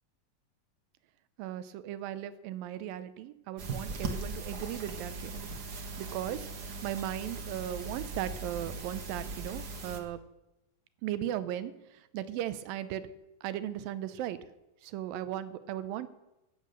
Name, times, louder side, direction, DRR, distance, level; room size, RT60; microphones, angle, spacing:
voice 1, 1.4-5.5 6.0-10.2 11.0-13.1 13.4-14.4 14.8-16.1, right 12 dB, 90° right, 14 dB, 2.5 m, -37 dB
sound 1, 3.6-10.0, right 3 dB, 60° right, 1.0 m, -39 dB
13.0 x 9.4 x 6.7 m, 0.95 s
omnidirectional pair, 3.9 m